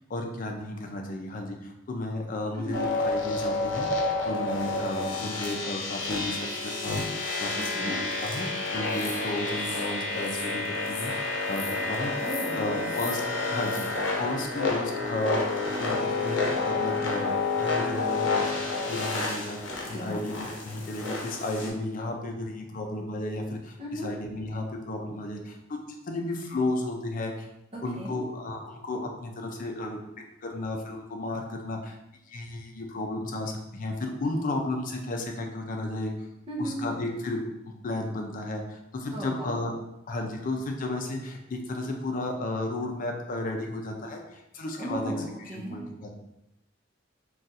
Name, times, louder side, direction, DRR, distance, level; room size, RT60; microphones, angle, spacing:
voice 1, 0.1-7.9 8.2-11.1 11.5-12.1 12.6-13.2 13.5-15.4 15.6-18.4 18.9-27.5 27.8-30.0 30.4-32.0 32.3-36.1 36.6-37.4 37.7-39.7 40.1-45.1 45.5-46.1, left 2 dB, 45° left, 2 dB, 0.5 m, -33 dB
sound 1, 2.7-21.7, left 3 dB, 80° left, 0.7 m, -30 dB
voice 2, 7.6-8.0 12.2-12.9 19.9-20.2 23.8-24.1 27.7-28.1 36.5-36.8 39.1-39.6 44.8-45.8, right 1 dB, 30° right, -4 dB, 0.7 m, -36 dB
2.5 x 2.3 x 4.0 m, 0.88 s
head